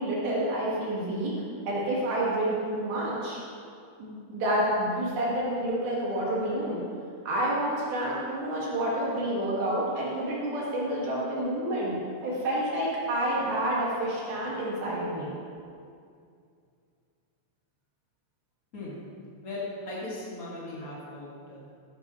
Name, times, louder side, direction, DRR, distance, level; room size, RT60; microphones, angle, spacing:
voice 1, 0.0-1.3 1.7-3.4 4.0-6.8 7.2-11.9 12.2-15.3, right 1 dB, 55° right, -6 dB, 3.4 m, -29 dB
voice 2, 19.4-21.6, left 2 dB, 70° left, -7 dB, 0.8 m, -38 dB
14.0 x 11.5 x 3.2 m, 2.4 s
omnidirectional pair, 5.8 m